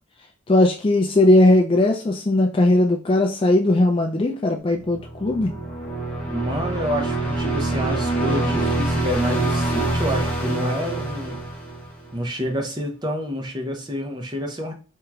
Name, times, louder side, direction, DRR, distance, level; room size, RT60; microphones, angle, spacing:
voice 1, 0.5-5.5, left 1 dB, 25° left, 2 dB, 0.3 m, -18 dB
sound 1, 4.8-12.2, right 2 dB, 5° left, 1.1 m, -25 dB
voice 2, 6.2-11.4 12.1-14.7, equal, 20° right, 3 dB, 0.6 m, -28 dB
4.5 x 2.9 x 2.3 m, 0.38 s
head